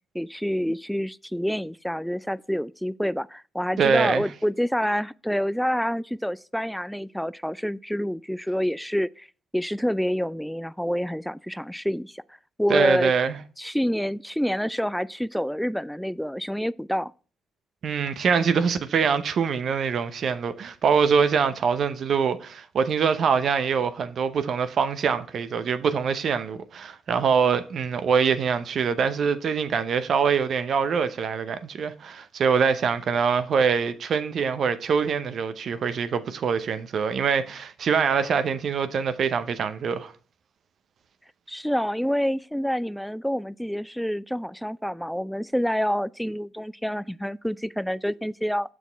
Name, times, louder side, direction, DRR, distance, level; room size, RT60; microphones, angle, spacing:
voice 1, 0.1-9.3 9.5-12.2 12.6-13.1 13.6-17.1 41.5-48.7, equal, ahead, 0.3 m, -27 dB
voice 2, 3.8-4.3 12.7-13.4 17.8-40.1, right 6 dB, 60° right, 0.7 m, -24 dB
7.2 x 6.1 x 3.4 m
hypercardioid pair, 45°, 0 cm